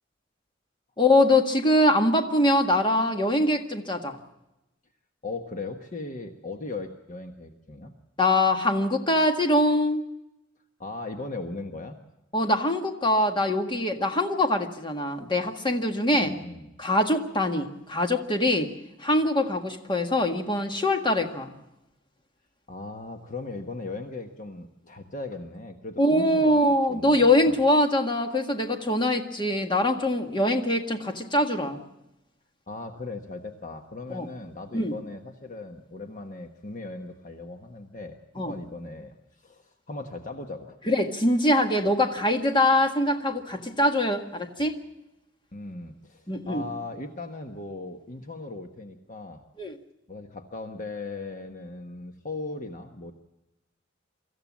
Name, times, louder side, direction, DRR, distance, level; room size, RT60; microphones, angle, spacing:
voice 1, 1.0-4.2 8.2-10.0 12.3-16.3 16.8-18.7 19.0-21.5 26.0-31.8 34.1-34.3 34.7-34.9 38.4-38.5 40.9-44.8 46.3-46.6 49.6-49.7, left 1 dB, 25° left, 5 dB, 1.7 m, -23 dB
voice 2, 5.2-7.9 10.8-12.0 16.2-16.7 22.7-26.6 26.9-27.6 32.7-40.8 45.5-49.4 50.1-53.1, left 3 dB, 40° left, 5 dB, 1.3 m, -38 dB
25.0 x 14.5 x 7.3 m, 0.93 s
head